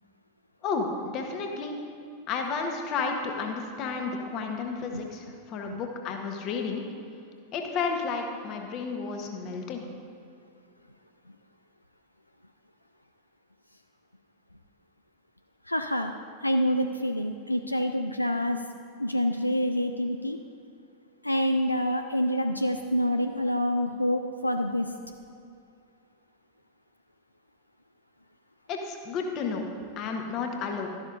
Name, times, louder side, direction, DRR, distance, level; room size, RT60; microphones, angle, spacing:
voice 1, 0.6-1.7 2.3-6.8 7.5-9.9 28.7-29.7 30.0-30.9, left 5 dB, 35° left, 3 dB, 1.2 m, -32 dB
voice 2, 15.7-16.1 16.4-18.6 19.0-20.4 21.2-24.9, equal, 85° left, 6 dB, 0.3 m, -27 dB
12.5 x 11.0 x 2.6 m, 2.5 s
figure-of-eight pair, 90°, 0 cm